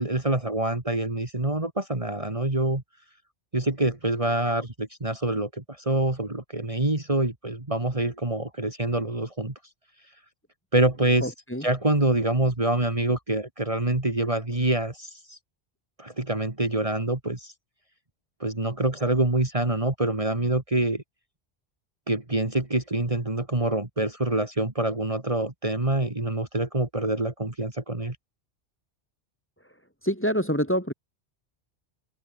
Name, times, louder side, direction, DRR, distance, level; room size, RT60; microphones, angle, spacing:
voice 1, 0.0-2.8 3.5-9.5 10.7-11.3 11.6-15.4 16.0-17.5 18.4-21.0 22.1-28.2, right 2 dB, 30° right, 2.4 m, -26 dB
voice 2, 11.2-11.6 30.0-30.9, equal, 10° left, 3.1 m, -26 dB
omnidirectional pair, 1.2 m